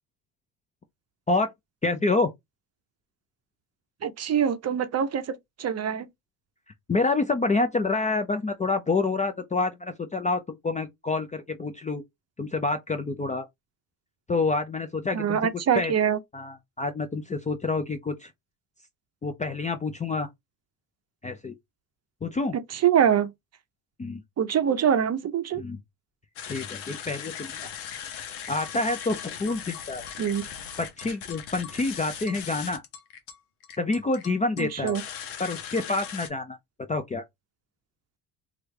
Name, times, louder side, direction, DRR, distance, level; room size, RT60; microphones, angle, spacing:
voice 1, 1.8-2.3 6.9-12.0 12.4-13.5 14.3-15.4 15.8-15.9 16.3-18.3 19.2-20.3 21.2-21.5 22.2-22.6 24.0-24.2 25.6-25.8 26.5-27.7 28.5-30.1 30.8-32.8 33.8-35.0 35.4-36.6 36.9-37.2, left 3 dB, 15° left, 0.4 m, -27 dB
voice 2, 4.0-6.1 15.1-16.2 22.7-23.3 24.4-25.6 30.2-30.4 34.6-35.0, right 8 dB, 35° right, 0.6 m, -24 dB
sound 1, 26.4-36.3, left 8 dB, 90° left, 0.8 m, -39 dB
3.1 x 2.5 x 3.1 m
supercardioid pair, 70°, 44 cm